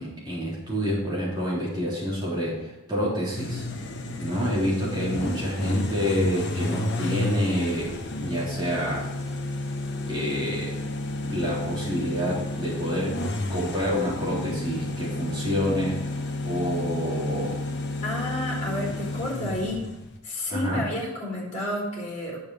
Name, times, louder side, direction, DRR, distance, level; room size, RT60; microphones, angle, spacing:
voice 1, 0.0-3.6 4.2-9.1 10.1-10.7 11.2-13.1 13.5-15.9 16.4-17.5 20.5-20.8, equal, 20° right, -7 dB, 3.6 m, -28 dB
sound 1, 3.3-20.2, left 1 dB, 50° left, 1.0 m, -31 dB
voice 2, 18.0-19.8 20.2-22.4, left 1 dB, 30° left, -4 dB, 3.7 m, -30 dB
9.5 x 7.2 x 4.8 m, 0.99 s
head